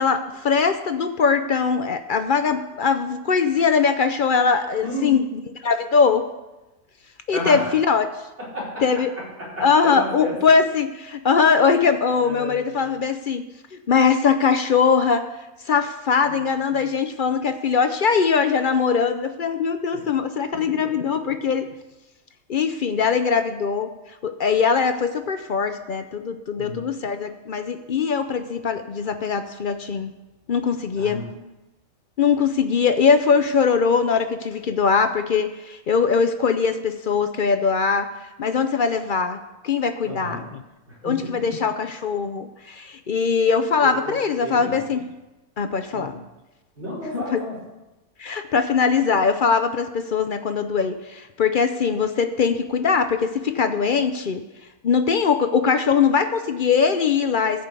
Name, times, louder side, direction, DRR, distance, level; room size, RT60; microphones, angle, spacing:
voice 1, 0.0-5.2 5.6-6.3 7.3-8.1 8.8-9.1 9.6-13.4 13.9-15.2 15.7-21.7 22.5-23.9 24.2-30.1 30.5-31.2 32.2-38.1 38.4-39.4 39.6-40.4 41.0-45.0 45.6-46.1 47.1-47.4 48.2-54.4 54.8-57.7, left 5 dB, 60° left, 9 dB, 0.5 m, -21 dB
voice 2, 4.8-5.3 7.3-7.7 8.4-10.4 12.2-12.6 16.2-16.5 19.9-20.1 20.5-21.5 26.6-26.9 31.0-31.4 40.0-40.5 40.9-41.5 43.8-44.8 45.9-46.2 46.8-47.6, equal, 45° right, -8 dB, 5.7 m, -33 dB
14.5 x 5.3 x 8.1 m, 1.0 s
omnidirectional pair, 1.6 m